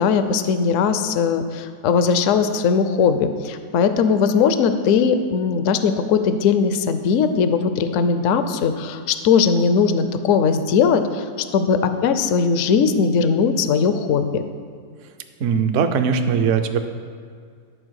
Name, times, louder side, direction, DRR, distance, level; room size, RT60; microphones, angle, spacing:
voice 1, 0.0-11.2 11.5-14.4, left 6 dB, 65° left, 10 dB, 0.8 m, -19 dB
voice 2, 15.4-16.9, right 6 dB, 60° right, 7 dB, 0.8 m, -20 dB
11.5 x 4.4 x 6.3 m, 2.1 s
omnidirectional pair, 1.7 m